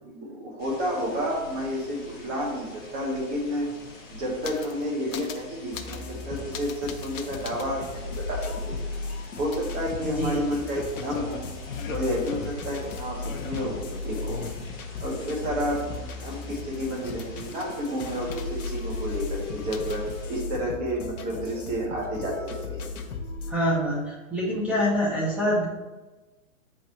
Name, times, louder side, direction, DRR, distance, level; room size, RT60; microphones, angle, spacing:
voice 1, 0.0-3.7 4.1-8.7 9.4-11.4 11.9-13.8 14.0-14.4 15.0-22.9, equal, 20° right, -3 dB, 1.5 m, -30 dB
sound 1, 0.6-20.4, left 2 dB, 20° left, 1.4 m, -46 dB
sound 2, 3.7-4.8 5.1-5.5 5.7-6.1 6.5-7.7 8.1-8.2 9.5-15.2 15.6-17.6 18.1-18.9 19.2-19.3 19.7-20.1, left 6 dB, 65° left, 0.8 m, -41 dB
sound 3, 5.7-23.5, left 3 dB, 85° left, 1.0 m, -36 dB
voice 2, 10.0-10.6 23.5-25.7, equal, 5° right, -5 dB, 0.7 m, -26 dB
7.9 x 4.6 x 3.1 m, 1.2 s
hypercardioid pair, 150°, 42 cm